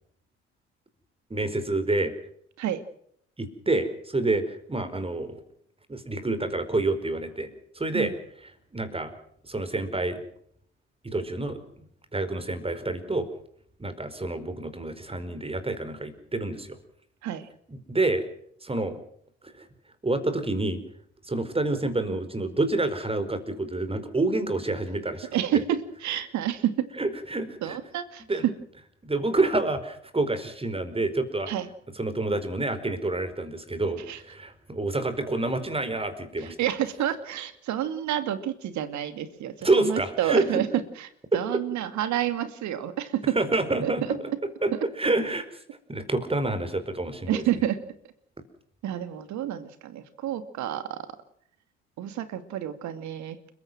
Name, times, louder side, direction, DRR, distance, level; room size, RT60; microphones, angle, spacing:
voice 1, 1.3-2.1 3.4-5.4 5.9-7.5 7.7-8.1 8.7-9.1 9.5-10.2 11.0-11.8 12.1-13.3 13.8-16.8 17.7-18.2 18.6-19.0 19.6-19.7 20.0-20.8 21.3-25.3 27.0-27.8 28.3-28.4 29.0-31.5 32.0-36.5 39.6-40.5 41.3-41.4 43.3-44.2 44.6-44.7 45.0-45.5 45.9-47.4, right 2 dB, 15° right, 10 dB, 4.8 m, -28 dB
voice 2, 25.3-26.9 27.6-28.5 31.5-31.7 34.1-34.2 36.4-40.7 41.0-43.4 43.8-43.9 44.7-44.8 47.3-47.8 48.8-51.0 52.0-53.4, right 11 dB, 55° right, 11 dB, 2.4 m, -29 dB
29.5 x 15.5 x 6.2 m, 0.66 s
hypercardioid pair, 55°, 33 cm